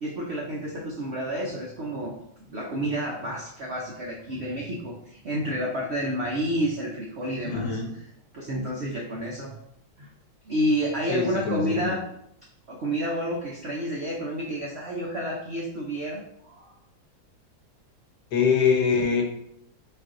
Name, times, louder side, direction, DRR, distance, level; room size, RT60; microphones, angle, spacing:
voice 1, 0.0-2.1 2.5-9.5 10.0-10.1 10.4-12.0 12.7-16.7, equal, 85° right, -2 dB, 0.5 m, -30 dB
voice 2, 7.5-7.9 11.1-11.9 18.3-19.2, left 6 dB, 70° left, 2 dB, 1.3 m, -24 dB
4.3 x 2.5 x 3.7 m, 0.75 s
omnidirectional pair, 2.0 m